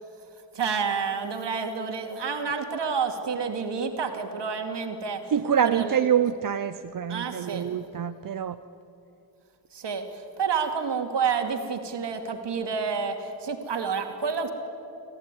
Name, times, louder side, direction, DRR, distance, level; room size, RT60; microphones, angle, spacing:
voice 1, 0.5-5.3 5.6-6.0 7.1-7.7 9.7-14.5, right 5 dB, 65° right, 5 dB, 2.6 m, -29 dB
voice 2, 5.3-8.6, right 8 dB, 50° right, 11 dB, 0.7 m, -25 dB
26.0 x 15.0 x 9.9 m, 2.7 s
cardioid pair, 75°, 44 cm